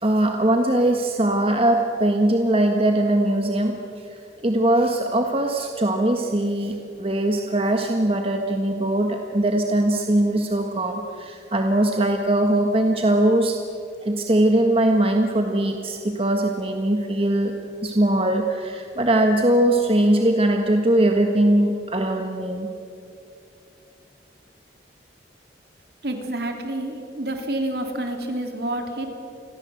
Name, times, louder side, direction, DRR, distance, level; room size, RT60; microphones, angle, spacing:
voice 1, 0.0-3.8 4.4-13.6 14.0-17.5 17.8-22.7, right 1 dB, 30° right, 3 dB, 1.5 m, -21 dB
voice 2, 26.0-29.1, right 1 dB, 60° right, 4 dB, 3.5 m, -28 dB
29.0 x 21.5 x 7.9 m, 2.7 s
head